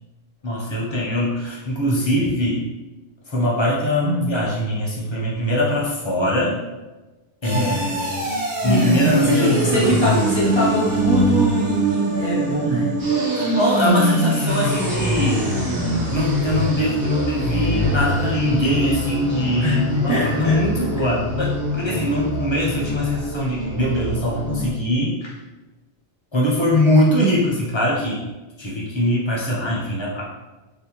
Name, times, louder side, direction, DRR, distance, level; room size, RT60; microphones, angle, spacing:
voice 1, 0.4-2.6 3.3-6.6 7.4-8.3 8.6-10.0 13.3-25.3 26.3-28.3 28.6-30.3, left 1 dB, 40° left, -4 dB, 0.4 m, -22 dB
sound 1, 7.4-24.7, equal, 85° right, 1.0 m, -23 dB
voice 2, 7.5-7.8 9.2-13.0 19.6-19.8 20.1-21.0, right 1 dB, 45° right, -7 dB, 0.3 m, -22 dB
2.6 x 2.1 x 2.9 m, 1.1 s
omnidirectional pair, 1.1 m